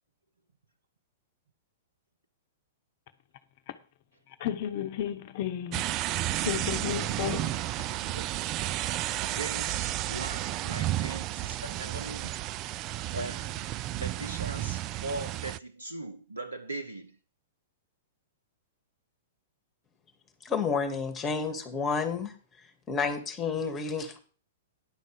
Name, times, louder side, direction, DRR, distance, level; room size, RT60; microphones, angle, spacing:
voice 1, 4.3-5.8 6.4-7.9, left 10 dB, 50° left, 1.0 m, -33 dB
sound 1, 5.7-15.6, right 15 dB, 35° right, 0.4 m, -32 dB
voice 2, 7.9-8.2 9.2-9.9 10.1-12.3 13.1-13.7 14.0-17.1, right 2 dB, 85° right, 0.9 m, -39 dB
voice 3, 20.4-22.3 22.9-24.2, left 5 dB, 20° left, 2.0 m, -30 dB
10.5 x 5.3 x 6.6 m
figure-of-eight pair, 105°, 0 cm